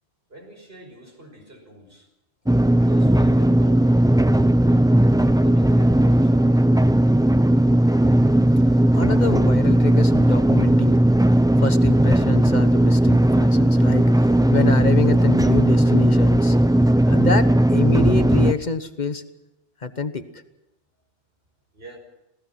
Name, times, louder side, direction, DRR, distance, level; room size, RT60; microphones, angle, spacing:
voice 1, 0.3-2.1 2.7-4.0 5.0-6.6 8.7-8.8 21.7-22.0, right 1 dB, 60° right, 3 dB, 5.8 m, -45 dB
sound 1, 2.5-18.5, right 1 dB, 5° right, 0.4 m, -17 dB
voice 2, 8.9-11.0 11.6-16.6 17.0-19.2 19.8-20.2, left 4 dB, 40° left, 10 dB, 1.3 m, -27 dB
28.0 x 18.0 x 5.9 m, 0.94 s
omnidirectional pair, 1.2 m